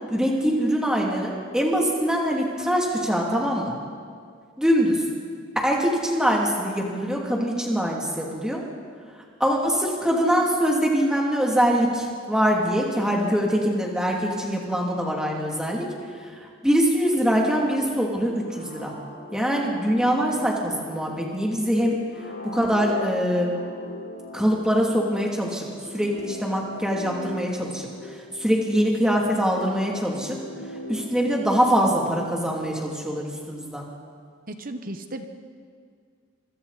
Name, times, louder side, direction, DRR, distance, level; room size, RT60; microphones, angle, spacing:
voice 1, 0.1-3.8 4.6-5.0 5.5-8.6 9.4-15.9 16.4-18.9 19.3-22.0 22.4-23.6 24.3-25.7 25.9-27.9 28.3-30.4 30.9-33.9, equal, 5° right, -2 dB, 2.8 m, -23 dB
sound 1, 18.4-33.0, left 1 dB, 85° left, 7.9 m, -40 dB
voice 2, 34.5-35.3, right 1 dB, 45° right, 7 dB, 1.2 m, -35 dB
26.0 x 24.5 x 4.3 m, 2.1 s
head